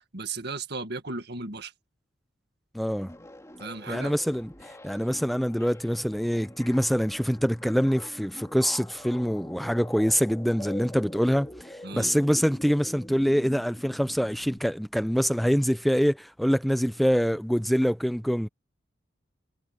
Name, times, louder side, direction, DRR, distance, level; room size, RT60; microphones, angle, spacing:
voice 1, 0.1-1.7 3.6-4.1 11.8-12.1, right 3 dB, 60° right, 2.0 m, -35 dB
voice 2, 2.7-3.1 3.9-18.5, equal, ahead, 0.5 m, -25 dB
sound 1, 3.0-14.6, left 1 dB, 15° left, 3.0 m, -44 dB
head